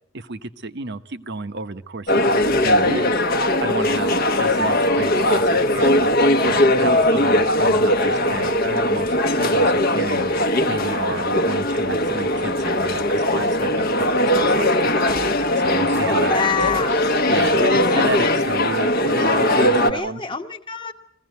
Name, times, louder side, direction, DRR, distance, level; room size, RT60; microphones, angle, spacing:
voice 1, 0.1-2.2 2.6-3.2 3.6-6.1 6.4-10.3 10.7-14.9 15.6-16.5 17.3-20.2, right 3 dB, 55° right, 12 dB, 0.9 m, -31 dB
sound 1, 2.1-19.9, left 1 dB, 45° left, 1.0 m, -19 dB
voice 2, 16.0-17.0 17.8-18.3 19.8-20.9, left 5 dB, 25° left, 7 dB, 1.2 m, -26 dB
22.5 x 16.0 x 9.3 m, 0.70 s
head